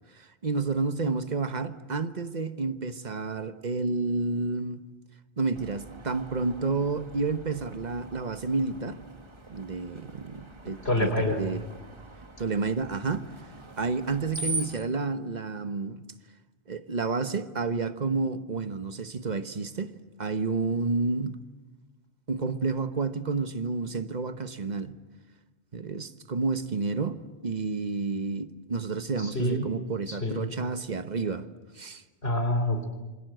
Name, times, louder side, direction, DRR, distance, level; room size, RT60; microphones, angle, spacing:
voice 1, 0.1-4.9 5.4-9.0 9.5-11.6 12.4-13.2 13.8-16.0 16.7-19.9 20.2-21.4 22.3-25.0 25.7-31.5 31.7-32.0, right 4 dB, 40° right, 1.2 m, -30 dB
Screech, 5.5-14.9, right 2 dB, 25° right, 1.4 m, -42 dB
voice 2, 10.8-11.4 29.2-29.6 30.1-30.5 32.2-32.9, left 1 dB, 65° left, 4.1 m, -27 dB
27.5 x 26.0 x 7.9 m
omnidirectional pair, 1.1 m